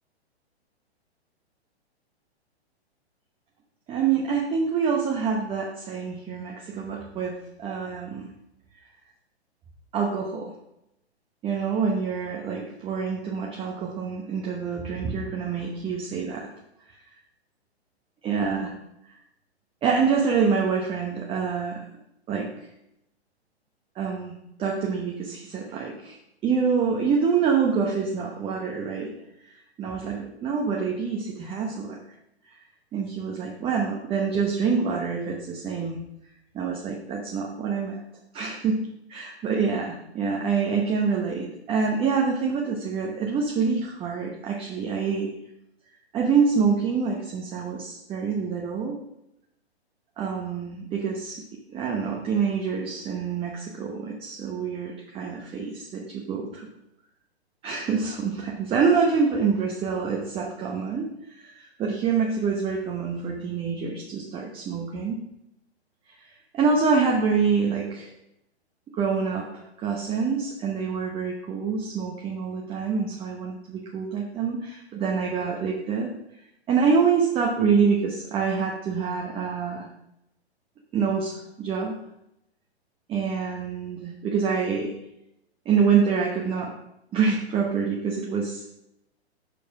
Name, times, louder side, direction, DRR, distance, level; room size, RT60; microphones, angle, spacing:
voice 1, 3.9-8.3 9.9-10.5 11.4-16.5 18.2-18.7 19.8-21.9 22.3-22.5 23.9-29.1 29.4-29.5 29.8-32.0 32.5-32.6 32.9-36.0 36.5-38.0 38.3-38.8 39.1-45.3 46.1-49.0 50.2-51.4 51.7-56.7 57.6-61.1 61.4-65.2 66.2-66.3 66.5-68.1 68.9-69.5 69.8-76.1 76.7-79.9 80.9-82.0 83.1-84.9 85.6-86.7 87.1-88.7, right 5 dB, 15° right, 0 dB, 1.1 m, -26 dB
8.3 x 6.8 x 4.9 m, 0.84 s
figure-of-eight pair, 115°, 33 cm